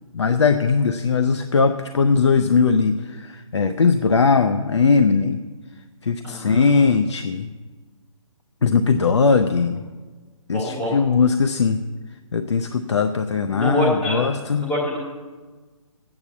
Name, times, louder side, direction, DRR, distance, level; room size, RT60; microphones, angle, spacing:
voice 1, 0.1-5.4 6.0-7.5 8.6-9.8 10.5-11.8 12.3-14.7, left 5 dB, 55° left, 8 dB, 0.6 m, -19 dB
voice 2, 6.2-6.8 10.5-11.0 13.5-14.2 14.6-15.0, left 1 dB, 5° left, -8 dB, 0.6 m, -25 dB
10.5 x 8.6 x 7.1 m, 1.4 s
hypercardioid pair, 175°, 18 cm